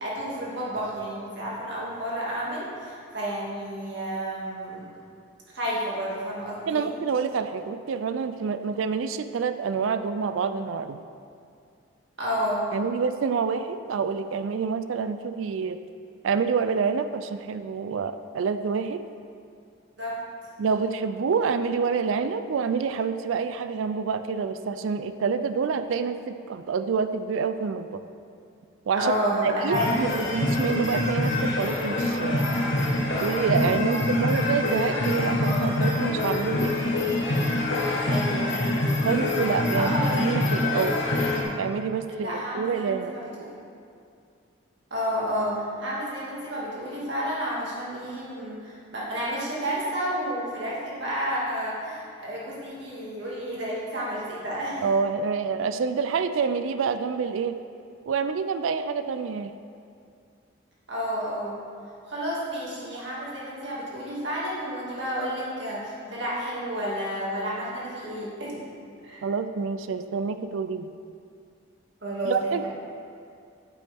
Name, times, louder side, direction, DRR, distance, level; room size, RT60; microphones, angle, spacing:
voice 1, 0.0-4.9 5.5-6.9 12.2-12.6 20.0-20.2 29.0-29.9 33.8-34.1 38.0-39.3 39.7-40.2 42.1-43.5 44.9-54.8 60.9-61.6 62.1-68.6 69.0-69.2 72.0-72.7, equal, 65° right, -6 dB, 2.2 m, -31 dB
voice 2, 6.7-11.0 12.7-15.8 16.2-19.1 20.6-28.0 28.9-29.1 29.4-32.5 33.2-36.8 39.0-41.0 41.6-43.2 54.8-57.5 58.1-59.5 69.2-70.9 72.3-72.7, right 5 dB, 80° right, 11 dB, 0.4 m, -27 dB
sound 1, 29.7-41.4, left 1 dB, 65° left, 1.2 m, -25 dB
8.5 x 8.4 x 3.5 m, 2.4 s
head